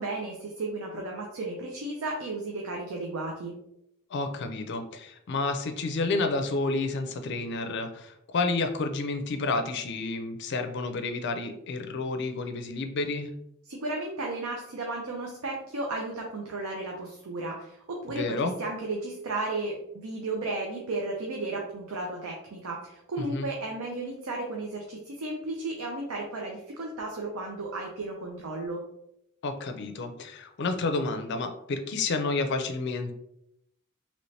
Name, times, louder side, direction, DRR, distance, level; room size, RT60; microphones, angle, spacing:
voice 1, 0.0-3.5 13.7-28.8, right 2 dB, 85° right, 0 dB, 0.6 m, -34 dB
voice 2, 4.1-13.3 18.1-18.5 23.2-23.5 29.4-33.2, left 3 dB, 55° left, 7 dB, 0.4 m, -30 dB
3.2 x 3.0 x 2.7 m, 0.80 s
head